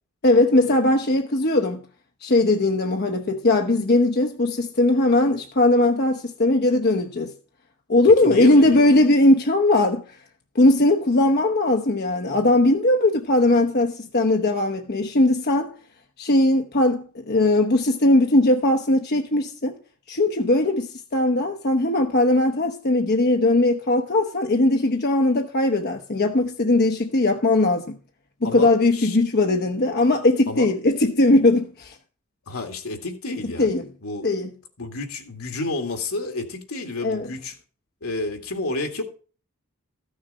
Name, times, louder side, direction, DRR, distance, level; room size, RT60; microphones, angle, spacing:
voice 1, 0.2-1.8 2.2-7.3 7.9-10.0 10.5-15.7 16.2-19.8 20.1-28.0 28.4-32.0 33.6-33.8 34.2-34.5 37.0-37.3, left 2 dB, 45° left, 0.9 m, -19 dB
voice 2, 8.2-8.9 28.4-29.2 30.5-30.7 32.5-33.7 34.0-34.3 34.8-37.5 38.0-39.0, left 2 dB, 75° left, 2.1 m, -30 dB
14.0 x 6.6 x 5.4 m
head